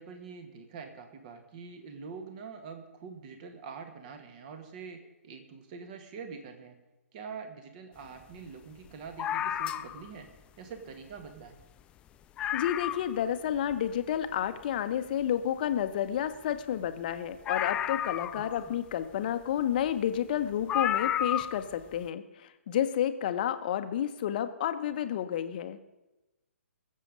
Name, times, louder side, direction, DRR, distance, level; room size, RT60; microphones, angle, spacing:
voice 1, 0.0-6.8 7.1-10.3 10.6-11.6 18.4-18.7, right 5 dB, 35° right, 7 dB, 1.9 m, -45 dB
sound 1, 9.2-10.1 11.2-11.3 11.6-11.7 12.1-12.2 12.4-13.2 13.7-13.8 17.5-18.7 19.9-20.0 20.7-21.6 21.9-22.0, left 10 dB, 15° left, 0.4 m, -31 dB
voice 2, 12.5-25.8, left 10 dB, 40° left, 10 dB, 1.0 m, -30 dB
21.5 x 7.6 x 5.3 m, 1.0 s
figure-of-eight pair, 130°, 8 cm